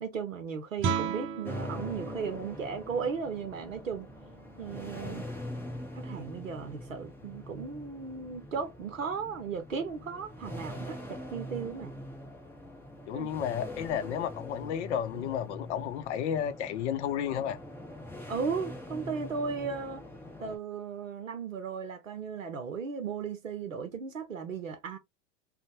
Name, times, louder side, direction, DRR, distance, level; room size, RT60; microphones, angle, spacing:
voice 1, 0.0-4.1 4.6-5.2 5.9-12.0 13.1-13.3 18.3-20.1 20.4-25.0, right 5 dB, 90° right, 0.6 m, -36 dB
Guitar, 0.8-6.3, right 6 dB, 35° right, 0.6 m, -38 dB
sound 1, 1.4-20.6, left 1 dB, 5° left, 0.6 m, -43 dB
voice 2, 13.1-17.6, left 9 dB, 65° left, 0.5 m, -32 dB
2.6 x 2.1 x 2.8 m
figure-of-eight pair, 85°, 38 cm